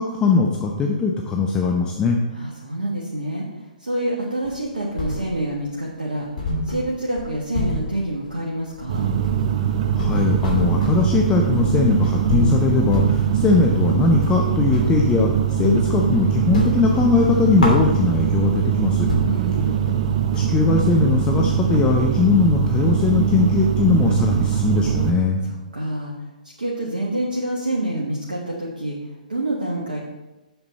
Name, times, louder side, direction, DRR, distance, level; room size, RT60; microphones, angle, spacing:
voice 1, 0.0-2.2 9.7-19.1 20.3-25.4, left 4 dB, 15° left, 1 dB, 0.7 m, -20 dB
voice 2, 2.3-9.1 19.3-19.8 25.4-26.3 26.6-30.0, right 1 dB, 80° right, -3 dB, 1.4 m, -27 dB
sound 1, 4.4-5.6 5.9-6.0 6.4-15.0 15.3-16.1 16.4-18.4 18.8-18.9 19.1-23.2, left 1 dB, 65° left, 2.8 m, -28 dB
sound 2, 8.9-25.1, right 9 dB, 45° right, 0.7 m, -22 dB
7.8 x 7.2 x 4.1 m, 1.0 s
figure-of-eight pair, 120°, 5 cm